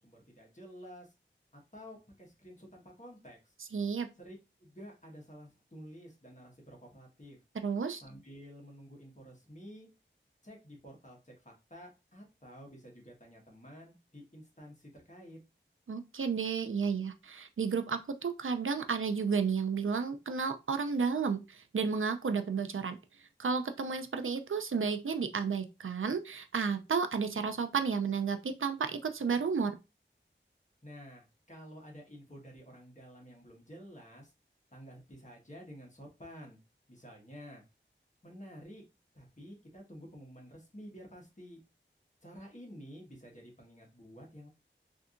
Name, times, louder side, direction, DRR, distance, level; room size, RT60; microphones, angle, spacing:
voice 1, 0.0-1.1 1.7-3.4 4.2-7.4 8.0-9.9 10.4-15.4 30.8-34.3 34.7-36.6 36.9-37.6 38.2-38.8 39.1-41.6 42.2-44.5, equal, 35° left, -1 dB, 1.3 m, -51 dB
voice 2, 3.6-4.1 7.5-8.0 15.9-23.0 23.4-29.7, right 5 dB, 90° right, 9 dB, 0.4 m, -32 dB
3.4 x 2.7 x 2.5 m, 0.26 s
wide cardioid pair, 40°, 20 cm